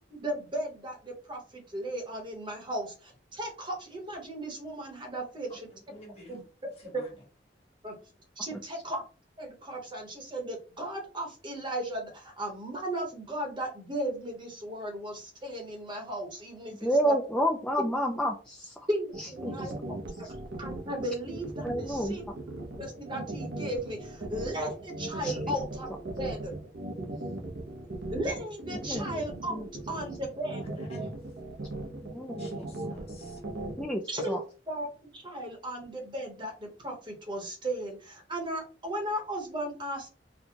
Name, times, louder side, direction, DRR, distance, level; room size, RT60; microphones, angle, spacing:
voice 1, 0.1-5.6 6.3-6.4 6.9-7.0 7.8-8.0 8.4-9.0 9.4-17.1 18.9-19.7 20.2-20.3 20.6-22.2 22.8-25.9 26.2-26.5 28.1-31.0 34.1-34.4 34.7-40.1, right 1 dB, 30° right, 1 dB, 1.0 m, -36 dB
voice 2, 5.7-6.4 6.8-7.1 30.4-31.1 32.4-33.4, left 1 dB, 35° left, 0 dB, 1.5 m, -50 dB
voice 3, 16.8-18.9 19.2-19.7 20.2-20.3 21.6-22.2 25.2-25.5 28.8-29.1 29.5-29.7 32.0-33.0 33.8-34.4, equal, 5° left, 1 dB, 0.4 m, -30 dB
sound 1, 19.1-33.9, right 2 dB, 70° right, 0.8 m, -38 dB
4.2 x 2.2 x 2.8 m, 0.36 s
head